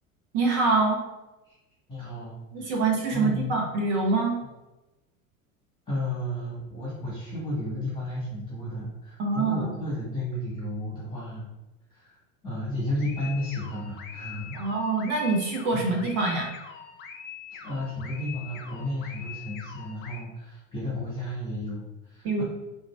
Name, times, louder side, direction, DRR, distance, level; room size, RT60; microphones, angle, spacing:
voice 1, 0.3-1.0 2.5-4.3 9.2-9.7 14.5-16.5 22.2-22.4, right 3 dB, 50° right, 0 dB, 0.9 m, -25 dB
voice 2, 1.9-3.5 5.9-11.5 11.9-14.8 15.7-15.9 17.5-22.4, left 1 dB, 10° left, -8 dB, 1.4 m, -33 dB
sound 1, 13.0-20.2, left 7 dB, 25° left, 0.4 m, -43 dB
4.5 x 2.7 x 2.4 m, 1.0 s
figure-of-eight pair, 80°, 42 cm